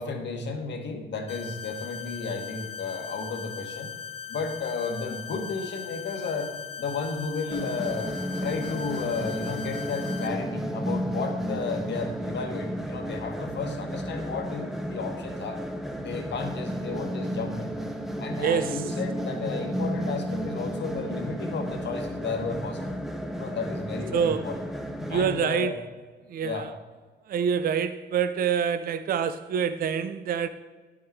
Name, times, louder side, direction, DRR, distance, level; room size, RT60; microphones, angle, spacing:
voice 1, 0.0-3.9 4.3-6.5 6.8-8.1 8.4-15.6 16.0-17.9 18.2-22.9 23.3-24.6 25.1-25.7 26.4-26.7, left 4 dB, 60° left, 1.5 m, -33 dB
sound 1, 1.3-10.3, left 7 dB, 30° left, 0.9 m, -39 dB
sound 2, 7.5-25.3, equal, ahead, 0.8 m, -33 dB
voice 2, 18.4-18.8 24.1-24.4 25.1-25.7 26.3-26.7 27.3-30.5, right 7 dB, 50° right, 0.5 m, -26 dB
10.5 x 6.5 x 4.6 m
cardioid pair, 90°, 20 cm